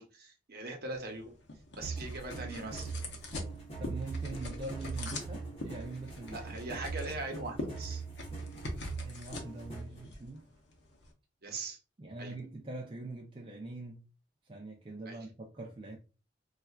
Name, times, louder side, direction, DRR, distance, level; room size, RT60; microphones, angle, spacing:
voice 1, 0.0-1.3 1.8-2.9 6.3-8.0 11.4-11.8 12.2-12.3 15.1-15.3, right 2 dB, 55° right, 0.8 m, -41 dB
sound 1, 0.9-11.1, left 2 dB, 65° left, 0.8 m, -44 dB
sound 2, 1.8-10.0, right 4 dB, 30° left, 1.2 m, -41 dB
voice 2, 3.8-6.6 9.0-10.5 12.0-14.0 14.4-16.0, right 2 dB, 30° right, 0.4 m, -43 dB
4.3 x 2.4 x 2.3 m
head